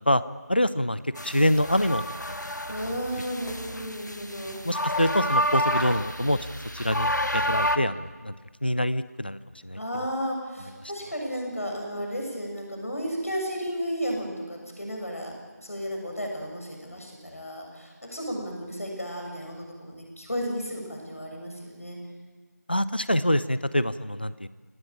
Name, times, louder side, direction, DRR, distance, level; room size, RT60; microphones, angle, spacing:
voice 1, 0.5-2.0 2.4-2.6 2.9-3.0 4.6-6.4 6.7-8.3 8.6-10.1 10.8-10.9 22.7-24.5, left 1 dB, 35° left, 16 dB, 0.6 m, -25 dB
sound 1, 1.2-7.8, equal, 90° left, 1.7 m, -29 dB
voice 2, 2.7-4.6 9.7-15.3 15.6-22.0, equal, 55° left, 1 dB, 7.3 m, -33 dB
23.5 x 18.5 x 8.9 m, 1.4 s
figure-of-eight pair, 175°, 9 cm